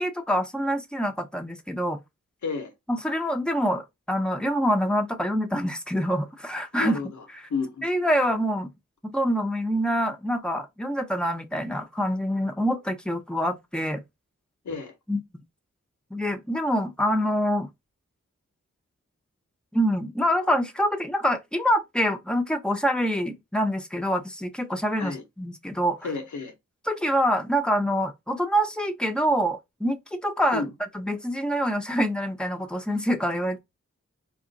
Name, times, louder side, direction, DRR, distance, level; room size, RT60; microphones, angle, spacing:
voice 1, 0.0-2.0 2.9-7.0 7.4-7.5 7.8-8.7 9.0-14.0 15.1-15.2 16.1-17.7 19.7-26.1 26.9-33.6, equal, 5° left, 1.0 m, -26 dB
voice 2, 2.4-2.7 6.8-7.1 7.5-7.9 14.6-14.9 25.0-25.2 26.0-26.5 30.5-30.7, left 4 dB, 80° left, 0.9 m, -31 dB
4.3 x 2.4 x 4.0 m
cardioid pair, 45°, 29 cm